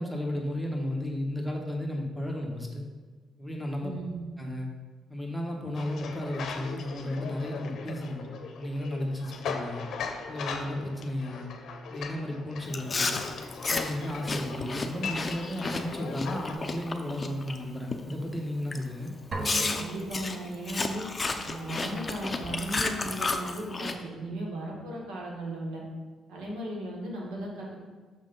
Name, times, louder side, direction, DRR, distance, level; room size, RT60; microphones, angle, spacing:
voice 1, 0.0-2.8 3.4-3.9 4.4-4.7 5.1-8.2 8.6-9.8 10.3-11.5 11.9-13.2 13.7-19.1, left 1 dB, ahead, 0 dB, 1.1 m, -33 dB
voice 2, 3.8-4.2 19.7-21.0 21.4-25.8 26.3-27.8, right 1 dB, 90° right, -2 dB, 1.5 m, -36 dB
sound 1, 5.7-16.5, left 5 dB, 70° left, 0.6 m, -39 dB
Chewing mastication, 12.7-17.6 17.9-18.2 18.7-18.8 19.4-23.9, left 3 dB, 30° left, 0.5 m, -32 dB
sound 2, 19.3-21.1, right 2 dB, 45° right, 0.9 m, -37 dB
6.4 x 3.5 x 5.3 m, 1.4 s
cardioid pair, 90°, 0 cm